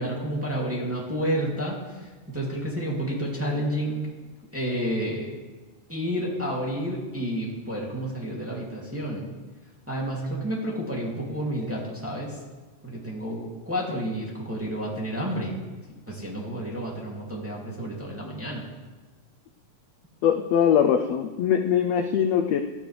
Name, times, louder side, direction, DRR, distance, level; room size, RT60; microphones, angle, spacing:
voice 1, 0.0-4.0 4.5-5.3 5.9-9.3 9.9-12.4 12.8-15.6 16.1-18.7, equal, 5° right, -4 dB, 2.2 m, -30 dB
voice 2, 20.2-22.6, left 8 dB, 75° left, 5 dB, 1.6 m, -22 dB
18.0 x 12.5 x 3.4 m, 1.3 s
omnidirectional pair, 3.5 m